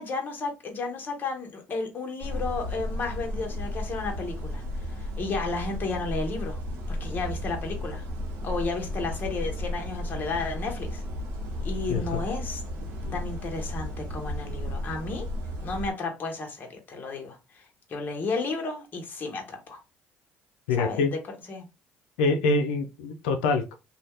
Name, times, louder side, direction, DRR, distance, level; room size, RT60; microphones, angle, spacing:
voice 1, 0.0-6.6 6.9-8.0 8.4-11.0 11.6-12.6 13.1-15.3 15.6-19.8 20.8-21.0 21.5-21.6, left 3 dB, 40° left, 1.1 m, -33 dB
sound 1, 2.2-15.9, left 1 dB, 75° right, 1.1 m, -34 dB
voice 2, 11.9-12.2 13.0-13.2 20.7-21.1 22.2-23.8, left 3 dB, 90° left, 0.4 m, -25 dB
2.7 x 2.2 x 3.1 m
supercardioid pair, 70°, 5 cm